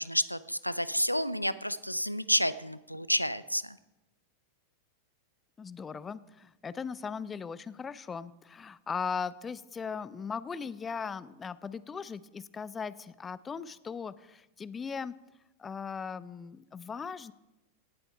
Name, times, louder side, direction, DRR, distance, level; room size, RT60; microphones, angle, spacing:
voice 1, 0.0-3.8, equal, 90° left, 16 dB, 0.4 m, -30 dB
voice 2, 5.6-15.1 15.6-17.3, left 6 dB, 20° left, 17 dB, 0.5 m, -38 dB
17.0 x 7.8 x 4.5 m, 0.96 s
figure-of-eight pair, 90°, 0 cm